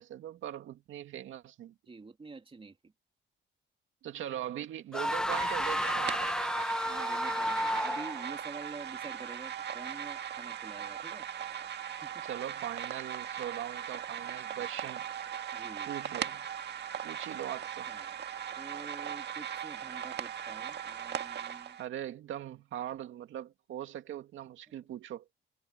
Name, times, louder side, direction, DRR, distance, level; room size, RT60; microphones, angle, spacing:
voice 1, 0.0-1.7 4.0-6.3 12.2-15.0 15.9-16.5 17.0-17.9 21.8-25.3, right 11 dB, 80° right, 2.4 m, -40 dB
voice 2, 1.9-2.9 6.8-11.3 11.9-12.3 14.4-14.9 15.5-16.0 17.9-18.2 18.6-21.8, right 4 dB, 25° right, 3.0 m, -48 dB
sound 1, 4.9-8.3, left 1 dB, 5° left, 1.0 m, -32 dB
sound 2, 5.3-21.8, right 9 dB, 60° right, 1.7 m, -39 dB
cardioid pair, 90°, 20 cm